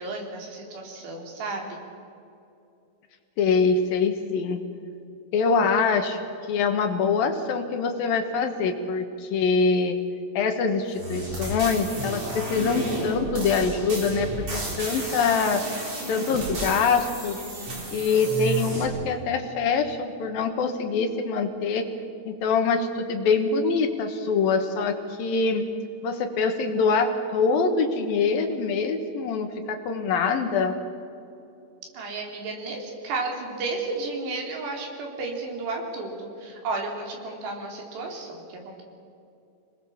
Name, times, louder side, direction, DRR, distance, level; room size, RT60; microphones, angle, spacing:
voice 1, 0.0-1.8 31.9-38.8, right 3 dB, 75° right, 1 dB, 5.6 m, -33 dB
voice 2, 3.4-4.6 5.3-6.2 6.5-10.0 10.4-15.6 16.1-17.4 17.9-21.9 22.3-25.6 26.0-30.8, left 5 dB, 65° left, 6 dB, 2.8 m, -24 dB
sound 1, 10.9-18.8, right 2 dB, 40° right, 5.1 m, -32 dB
26.0 x 20.0 x 7.2 m, 2.7 s
omnidirectional pair, 4.9 m